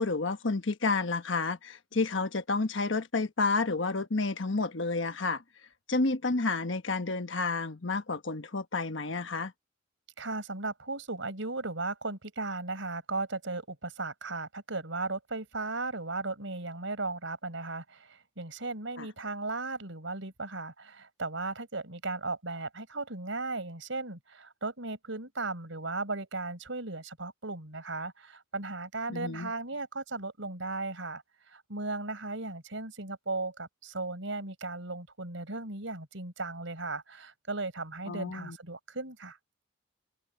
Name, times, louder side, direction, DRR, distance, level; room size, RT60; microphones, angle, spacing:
voice 1, 0.0-5.4 5.9-9.5 19.0-19.1 29.1-29.5 38.1-38.6, left 3 dB, 65° left, 1.3 m, -30 dB
voice 2, 10.2-39.4, right 3 dB, 70° right, 5.1 m, -36 dB
open air
head